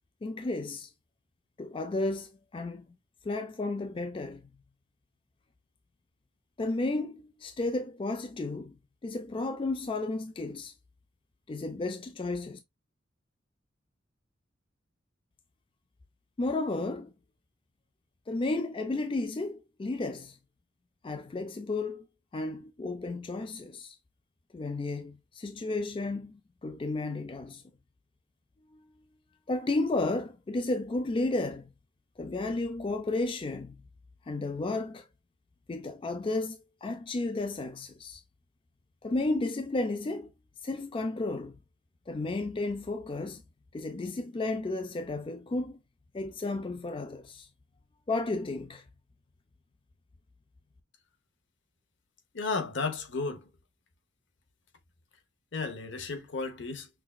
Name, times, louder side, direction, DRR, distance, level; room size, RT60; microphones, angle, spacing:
voice 1, 0.2-0.9 1.6-2.9 3.2-4.5 6.6-8.8 9.0-10.7 11.5-12.6 16.4-17.1 18.3-20.4 21.0-22.0 22.3-24.0 24.5-27.6 28.7-28.9 29.5-31.7 32.2-33.8 34.3-35.1 35.7-38.2 39.0-40.3 40.6-41.6 42.1-43.4 43.7-45.8 46.1-47.5 48.1-48.8, left 2 dB, 25° left, 0.3 m, -33 dB
voice 2, 52.3-53.5 55.5-56.9, left 4 dB, 65° left, 0.8 m, -33 dB
5.8 x 2.3 x 2.3 m
head